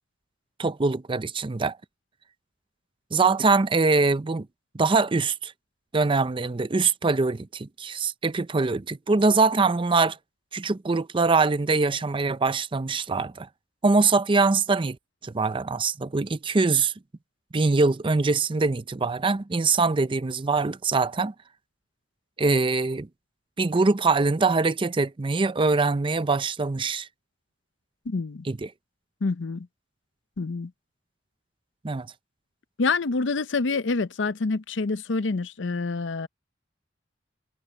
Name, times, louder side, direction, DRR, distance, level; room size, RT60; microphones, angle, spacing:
voice 1, 0.6-1.8 3.1-4.5 4.7-5.5 5.9-10.2 10.5-13.5 13.8-15.0 15.2-16.9 17.5-21.3 22.4-23.1 23.6-27.1 28.5-28.7 31.8-32.1, right 3 dB, 25° right, 0.5 m, -23 dB
voice 2, 28.1-28.5 29.2-29.7 30.4-30.7 32.8-36.3, left 4 dB, 70° left, 0.6 m, -27 dB
head